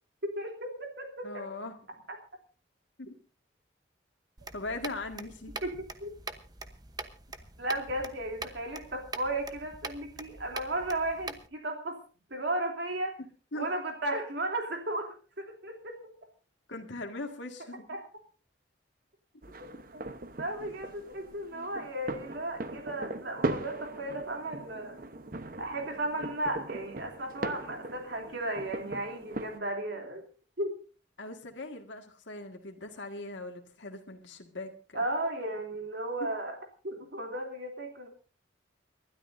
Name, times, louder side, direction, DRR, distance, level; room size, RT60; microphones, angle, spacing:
voice 1, 0.2-1.4 5.6-5.7 6.0-6.1 7.6-12.0 12.3-13.2 13.5-16.1 17.9-18.0 19.6-20.1 20.4-25.0 25.6-30.3 30.6-30.7 34.9-36.6 36.8-38.1, right 1 dB, 65° right, 2 dB, 3.2 m, -35 dB
voice 2, 1.2-1.8 3.0-3.1 4.5-5.5 13.5-13.7 16.7-17.9 31.2-35.0 36.2-36.3, left 2 dB, 75° left, 3 dB, 2.0 m, -40 dB
sound 1, 4.4-11.5, right 3 dB, 20° right, 1.0 m, -44 dB
sound 2, 19.4-29.6, right 2 dB, 45° right, 1.1 m, -39 dB
30.0 x 12.5 x 2.7 m, 0.37 s
head